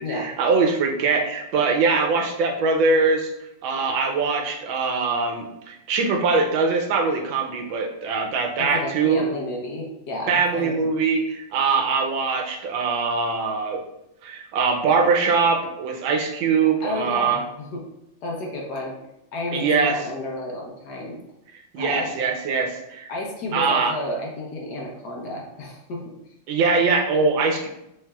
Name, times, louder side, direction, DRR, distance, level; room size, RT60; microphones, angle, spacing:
voice 1, 0.0-3.3 3.6-9.2 10.3-13.8 14.2-17.4 19.5-20.0 21.7-23.1 23.5-23.9 26.5-27.7, right 4 dB, 80° right, 3 dB, 1.5 m, -22 dB
voice 2, 8.6-10.9 16.8-17.8 18.2-19.0 19.3-21.2 21.8-22.1 23.1-26.1, left 1 dB, 65° left, -1 dB, 1.3 m, -31 dB
6.5 x 3.3 x 2.3 m, 0.84 s
omnidirectional pair, 2.1 m